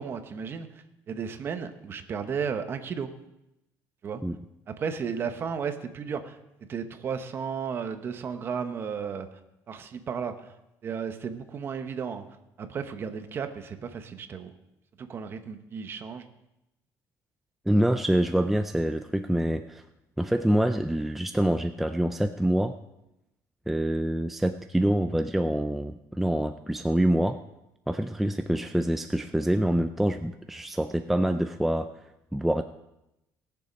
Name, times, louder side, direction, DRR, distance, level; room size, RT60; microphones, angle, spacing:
voice 1, 0.0-3.1 4.0-4.2 4.7-6.4 6.7-9.3 9.7-10.5 10.8-12.2 12.6-14.5 15.0-16.2, right 6 dB, 35° right, 8 dB, 1.0 m, -34 dB
voice 2, 17.7-19.8 20.2-22.7 23.7-27.4 27.9-31.9 32.3-32.6, right 1 dB, 5° right, 7 dB, 0.3 m, -26 dB
19.0 x 7.0 x 5.2 m, 0.89 s
cardioid pair, 155°, 7 cm